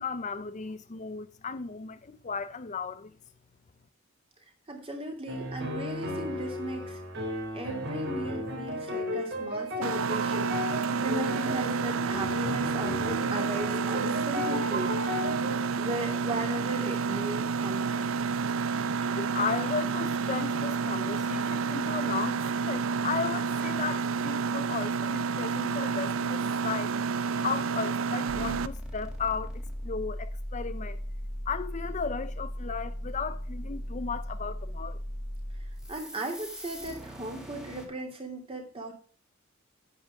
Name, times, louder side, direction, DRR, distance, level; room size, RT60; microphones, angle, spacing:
voice 1, 0.0-3.1 18.7-26.9 27.4-31.0 31.5-35.0, left 5 dB, 35° left, 0.6 m, -35 dB
voice 2, 4.7-7.0 7.5-15.4 15.8-18.1 35.9-38.9, right 2 dB, 25° right, 2.8 m, -37 dB
sound 1, 5.3-15.6, left 1 dB, 55° right, 3.3 m, -34 dB
Mechanisms, 9.8-28.7, right 5 dB, 75° right, 0.5 m, -30 dB
sound 2, 28.3-37.9, equal, 5° right, 2.2 m, -38 dB
10.5 x 8.6 x 3.5 m
head